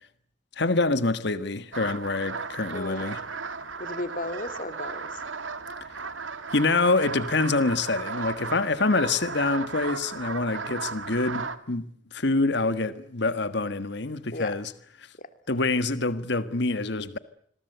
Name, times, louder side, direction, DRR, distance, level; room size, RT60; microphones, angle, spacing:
voice 1, 0.6-3.2 6.5-11.8 12.1-14.7 15.5-17.2, left 3 dB, 60° left, 1.6 m, -26 dB
sound 1, 1.7-11.6, right 5 dB, 90° right, 2.1 m, -35 dB
voice 2, 2.7-3.2 3.8-5.2 14.3-14.5 15.2-15.3, left 2 dB, 45° left, 2.7 m, -35 dB
27.0 x 22.0 x 8.1 m
head